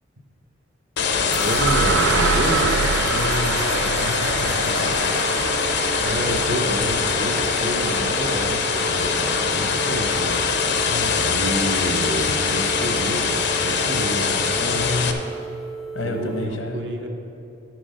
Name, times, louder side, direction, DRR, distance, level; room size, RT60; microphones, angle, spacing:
sound 1, 1.0-15.1, left 5 dB, 60° left, 0.6 m, -23 dB
sound 2, 1.3-9.3, right 6 dB, 85° right, 0.4 m, -27 dB
voice 1, 1.4-2.8 6.0-10.4 11.2-14.4 16.0-17.1, right 1 dB, 60° right, 2 dB, 1.1 m, -28 dB
voice 2, 3.1-5.0 10.9-11.3 14.6-15.2 15.9-16.8, left 2 dB, 80° left, 4 dB, 1.0 m, -30 dB
sound 3, 5.0-16.5, right 5 dB, ahead, 0.4 m, -35 dB
10.5 x 6.2 x 5.0 m, 2.8 s
head